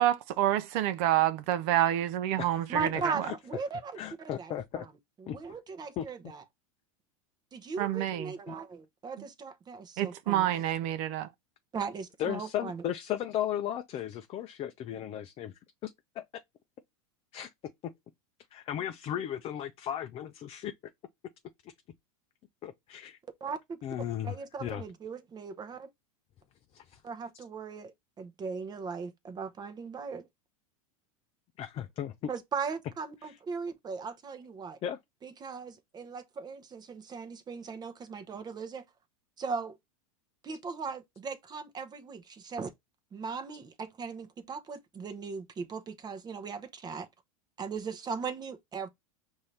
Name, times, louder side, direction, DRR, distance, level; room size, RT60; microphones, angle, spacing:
voice 1, 0.0-3.3 7.8-8.3 10.0-11.3, right 13 dB, 55° right, 0.6 m, -28 dB
voice 2, 2.7-4.9 5.2-6.4 7.5-10.5 11.7-12.9 23.4-23.8 24.2-25.9 27.0-30.3 32.3-34.8 35.2-38.8 39.4-39.8 40.4-42.7 43.1-47.1 47.6-48.9, right 5 dB, 25° right, 0.8 m, -38 dB
voice 3, 4.0-4.9 5.3-5.4 6.0-6.1 8.5-8.6 12.2-15.5 15.8-15.9 16.2-16.3 17.3-17.5 18.5-20.7 22.6-23.2 23.8-24.3 24.6-24.8 26.7-27.0 31.6-32.1 34.8-35.0, left 10 dB, 35° left, 0.5 m, -35 dB
5.4 x 2.7 x 3.2 m
hypercardioid pair, 110°, 18 cm